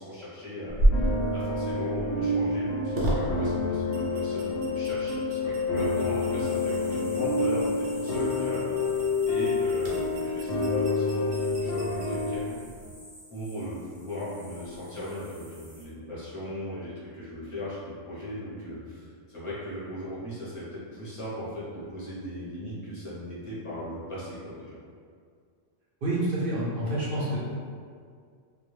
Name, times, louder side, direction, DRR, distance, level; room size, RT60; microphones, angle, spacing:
voice 1, 0.0-12.5 13.3-24.8, equal, 35° left, -9 dB, 0.6 m, -38 dB
sound 1, 0.7-12.9, right 1 dB, 75° right, 0.9 m, -33 dB
sound 2, 0.9-12.4, left 3 dB, 65° left, 0.8 m, -28 dB
sound 3, 5.7-15.8, equal, 20° right, 0.7 m, -51 dB
voice 2, 26.0-27.4, right 1 dB, 60° right, -8 dB, 0.6 m, -28 dB
2.2 x 2.1 x 3.0 m, 2.1 s
omnidirectional pair, 1.3 m